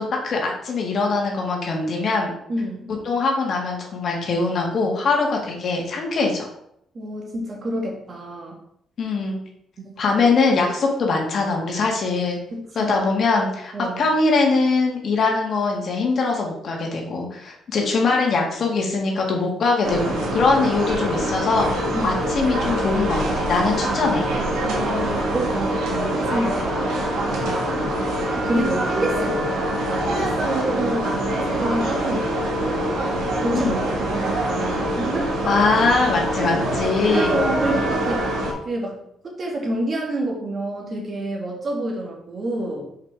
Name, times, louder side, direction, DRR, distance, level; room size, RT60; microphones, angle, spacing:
voice 1, 0.0-2.3 3.1-6.5 9.0-9.4 10.0-12.4 12.8-21.7 22.0-24.3 33.5-33.8 35.5-37.4, left 3 dB, 55° left, 0 dB, 1.8 m, -22 dB
voice 2, 2.5-2.9 6.9-8.6 9.8-9.9 12.5-13.0 13.7-14.0 21.9-22.3 24.6-27.9 28.4-29.6 29.9-33.0 33.4-33.8 34.1-35.4 36.4-36.8 37.1-38.3 38.7-42.9, right 1 dB, 45° right, -1 dB, 1.9 m, -28 dB
sound 1, 19.8-38.5, right 1 dB, 85° right, 1.6 m, -24 dB
5.7 x 4.9 x 3.5 m, 0.72 s
cardioid pair, 90°, 0 cm